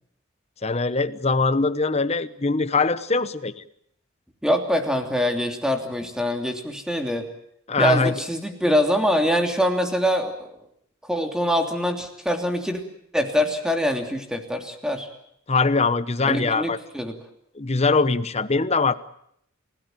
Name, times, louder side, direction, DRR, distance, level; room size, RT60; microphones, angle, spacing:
voice 1, 0.6-3.6 7.7-8.2 15.5-16.8 17.5-18.9, left 3 dB, 30° left, 14 dB, 1.0 m, -22 dB
voice 2, 4.4-7.3 7.8-10.5 11.0-12.8 13.1-15.1 16.2-17.2, equal, 5° right, 4 dB, 3.1 m, -24 dB
29.0 x 17.0 x 9.2 m, 0.72 s
head